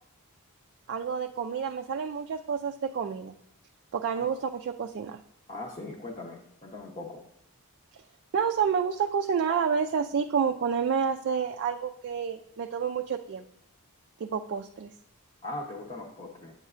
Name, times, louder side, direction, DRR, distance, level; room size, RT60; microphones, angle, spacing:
voice 1, 0.9-3.3 3.9-5.2 8.3-13.4 14.2-14.9, right 6 dB, 50° right, 5 dB, 0.3 m, -29 dB
voice 2, 5.5-7.2 15.4-16.5, left 2 dB, 30° left, -3 dB, 0.8 m, -40 dB
8.3 x 7.9 x 2.4 m, 0.76 s
head